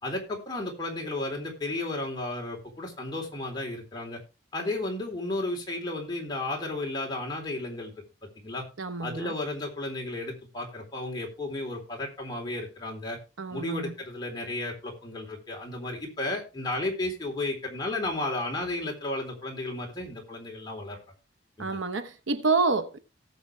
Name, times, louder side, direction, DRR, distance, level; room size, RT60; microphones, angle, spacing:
voice 1, 0.0-4.2 4.5-7.9 8.4-8.7 9.0-13.2 13.5-21.0 21.6-21.8, left 2 dB, 20° left, 3.8 m, -33 dB
voice 2, 8.8-9.3 13.4-13.9 21.6-23.0, right 4 dB, 80° right, 1.0 m, -28 dB
18.0 x 7.0 x 3.4 m
head